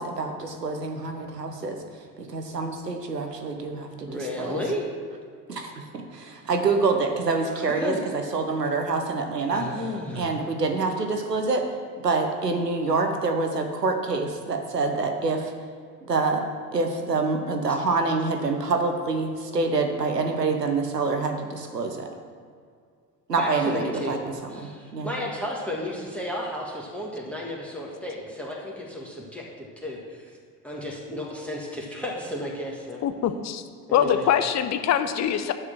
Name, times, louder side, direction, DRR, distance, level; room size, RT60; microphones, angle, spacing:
voice 1, 0.0-1.8 2.2-4.6 5.5-9.7 10.2-11.7 12.0-15.5 16.0-16.4 16.7-22.1 23.3-25.1, right 3 dB, 90° right, 5 dB, 1.0 m, -26 dB
voice 2, 4.1-4.8 7.5-8.0 9.5-10.3 23.4-24.1 24.5-30.3 30.6-33.0 33.9-34.3, left 1 dB, 5° left, -3 dB, 1.7 m, -33 dB
voice 3, 33.0-33.6 33.9-35.5, left 9 dB, 35° left, 9 dB, 0.8 m, -23 dB
6.7 x 6.5 x 7.5 m, 2.1 s
figure-of-eight pair, 65°, 47 cm